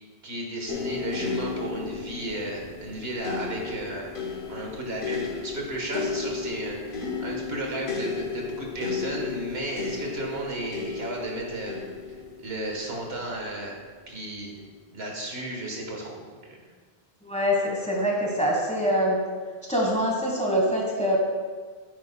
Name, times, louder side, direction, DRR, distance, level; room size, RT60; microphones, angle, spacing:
voice 1, 0.2-4.1 4.5-11.8 12.4-13.8 14.1-14.6 14.9-16.3, right 1 dB, 75° right, -1 dB, 1.6 m, -34 dB
sound 1, 0.7-13.8 14.6-14.7, left 5 dB, 55° left, 1.1 m, -34 dB
voice 2, 17.2-19.2 19.7-21.2, equal, 5° left, -2 dB, 1.4 m, -24 dB
9.5 x 8.4 x 2.3 m, 1.5 s
omnidirectional pair, 1.1 m